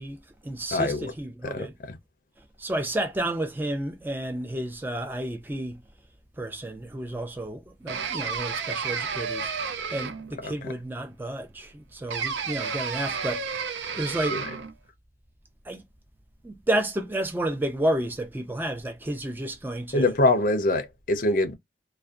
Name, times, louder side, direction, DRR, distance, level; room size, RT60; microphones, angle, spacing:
voice 1, 0.0-1.7 2.6-5.8 6.4-14.4 15.7-15.8 16.4-20.1, right 1 dB, 10° right, 0.4 m, -31 dB
voice 2, 0.7-1.1 1.4-2.0 10.4-10.7 14.3-14.4 19.9-21.5, left 2 dB, 50° left, 0.5 m, -24 dB
sound 1, 7.9-10.4 12.1-14.7, right 6 dB, 80° right, 0.4 m, -31 dB
2.5 x 2.1 x 2.3 m
head